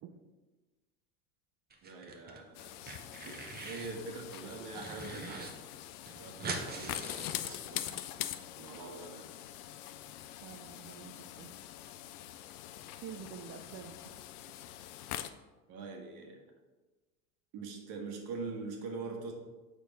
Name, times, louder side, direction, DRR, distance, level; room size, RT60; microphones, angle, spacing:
sound 1, 1.7-2.4 2.7-3.9 4.3-5.5 5.8-5.9 6.1-8.0, right 3 dB, 20° right, 0.9 m, -43 dB
voice 1, 1.8-2.7 3.2-3.4 3.6-5.5 6.2-8.1 8.6-9.3 15.7-16.4 17.5-19.3, right 3 dB, 50° right, 2 dB, 1.5 m, -43 dB
sound 2, 2.5-15.3, left 13 dB, 70° left, 0.6 m, -44 dB
voice 2, 10.4-11.5 12.9-14.1, right 8 dB, 35° right, 4 dB, 0.4 m, -48 dB
6.3 x 4.5 x 4.0 m, 1.2 s
hypercardioid pair, 90°, 47 cm